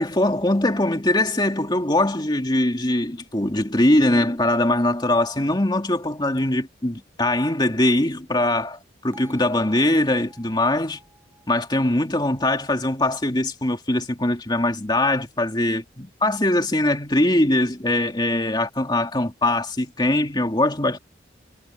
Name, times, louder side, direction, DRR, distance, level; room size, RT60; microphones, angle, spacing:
voice 1, 0.0-11.0 11.5-21.0, left 1 dB, 25° left, 2.6 m, -22 dB
Bell, 9.1-13.2, right 1 dB, 15° right, 7.3 m, -52 dB
head